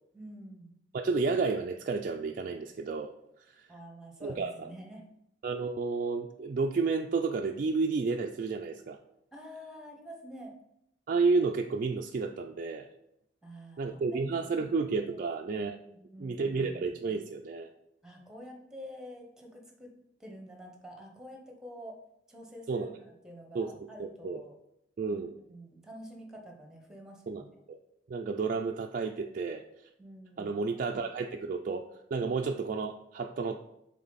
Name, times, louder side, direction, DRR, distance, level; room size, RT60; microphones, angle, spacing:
voice 1, 0.1-0.7 3.7-5.0 9.3-10.5 13.4-14.6 15.0-15.2 15.9-16.8 18.0-19.9 20.2-22.0 22.3-24.6 25.1-27.5 30.0-30.6, equal, 5° right, 1 dB, 1.0 m, -48 dB
voice 2, 0.9-3.1 3.5-3.7 4.2-4.7 5.4-9.0 11.1-12.9 13.8-15.8 16.2-17.7 22.7-22.9 23.5-23.7 24.0-24.4 25.0-25.3 27.3-27.4 27.7-27.8 28.1-29.6 30.4-33.6, right 4 dB, 45° right, 2 dB, 0.3 m, -31 dB
7.2 x 3.8 x 4.0 m, 0.81 s
head